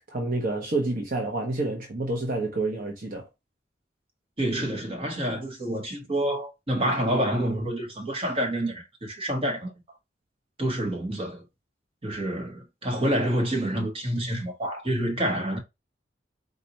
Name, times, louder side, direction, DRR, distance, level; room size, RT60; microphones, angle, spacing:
voice 1, 0.1-3.3, right 2 dB, 50° right, 1.0 m, -28 dB
voice 2, 4.4-9.7 10.6-11.4 12.0-15.6, right 1 dB, 30° right, 1.4 m, -28 dB
4.4 x 2.6 x 4.0 m
head